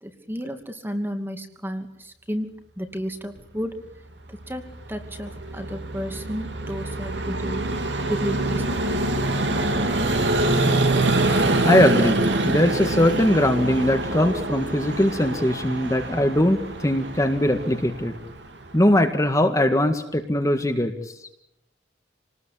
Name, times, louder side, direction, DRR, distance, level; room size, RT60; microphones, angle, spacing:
voice 1, 0.0-3.8 4.3-7.6 8.1-9.0, equal, 10° right, 6 dB, 2.6 m, -32 dB
Vehicle, 4.4-19.0, right 2 dB, 65° right, 3.2 m, -25 dB
voice 2, 11.7-18.2 18.7-21.2, left 1 dB, 15° left, 5 dB, 1.9 m, -21 dB
28.0 x 19.5 x 8.6 m, 0.85 s
head